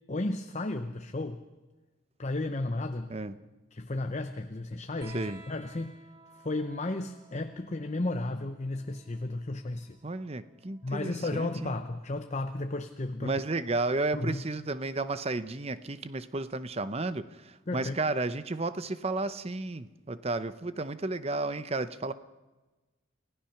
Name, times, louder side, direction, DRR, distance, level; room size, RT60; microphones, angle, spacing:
voice 1, 0.1-1.4 2.2-3.1 3.7-6.0 6.4-10.0 10.8-13.3 14.1-14.4 17.7-17.9, left 2 dB, 35° left, 8 dB, 0.7 m, -33 dB
sound 1, 5.0-12.1 13.4-14.3 15.6-15.7, right 2 dB, 45° right, 2.9 m, -56 dB
voice 2, 10.0-11.8 13.2-22.1, right 2 dB, 30° right, 13 dB, 0.7 m, -33 dB
28.5 x 16.0 x 5.9 m, 1.2 s
head